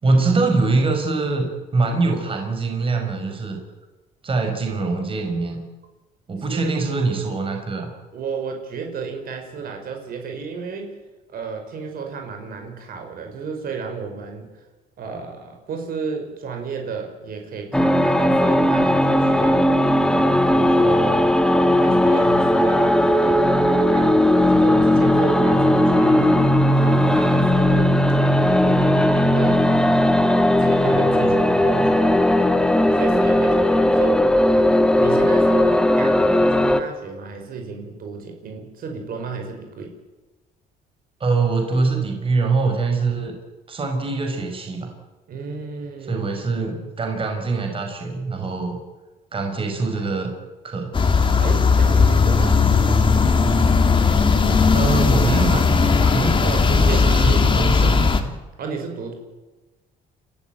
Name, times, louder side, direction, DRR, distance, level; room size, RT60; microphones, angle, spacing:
voice 1, 0.0-3.6 4.2-5.6 6.3-7.9 36.2-36.4 41.2-43.3 43.7-44.9 46.1-48.8 49.3-50.3 50.6-51.0 54.7-56.4 56.7-58.0, right 3 dB, 30° right, 3 dB, 5.0 m, -23 dB
voice 2, 6.5-7.1 8.1-11.0 11.3-14.6 15.0-19.7 20.1-21.4 21.8-26.4 26.7-28.0 28.5-29.8 30.6-32.2 32.9-34.3 35.0-39.9 45.3-46.3 51.4-53.0 56.4-57.4 58.6-59.1, right 5 dB, 60° right, 4 dB, 5.6 m, -32 dB
sound 1, 17.7-36.8, left 1 dB, 5° left, 1.7 m, -17 dB
sound 2, 50.9-58.2, left 4 dB, 30° left, 2.7 m, -17 dB
29.5 x 14.0 x 9.2 m, 1.2 s
cardioid pair, 110°, 17 cm